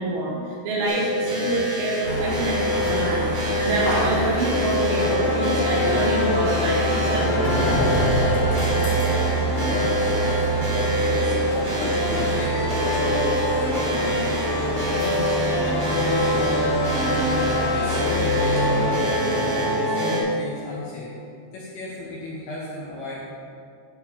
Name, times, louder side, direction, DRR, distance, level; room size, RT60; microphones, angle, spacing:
voice 1, 0.0-7.3 8.0-8.4, right 2 dB, 80° right, -5 dB, 4.6 m, -26 dB
sound 1, 0.9-20.2, equal, 35° right, 2.0 m, -26 dB
sound 2, 2.0-18.9, right 1 dB, 35° left, 2.6 m, -27 dB
sound 3, 4.9-20.1, left 1 dB, 55° left, 4.1 m, -27 dB
voice 2, 9.0-14.3 14.8-16.5 17.0-21.1 21.5-23.3, left 2 dB, 75° left, -4 dB, 2.4 m, -35 dB
12.0 x 4.8 x 5.5 m, 2.4 s
omnidirectional pair, 5.6 m